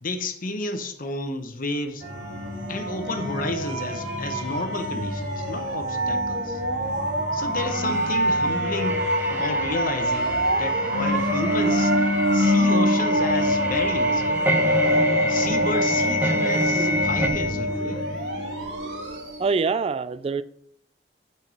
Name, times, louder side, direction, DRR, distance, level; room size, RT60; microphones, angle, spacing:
voice 1, 0.0-2.0 2.7-6.6 7.3-9.0 9.3-14.2 15.3-18.0, left 2 dB, 50° left, 0.9 m, -31 dB
sound 1, 2.0-19.5, equal, 75° right, 2.2 m, -24 dB
sound 2, 7.6-17.3, right 1 dB, 10° right, 1.0 m, -30 dB
voice 2, 19.4-20.4, right 5 dB, 35° right, 0.3 m, -24 dB
9.2 x 4.6 x 4.8 m
head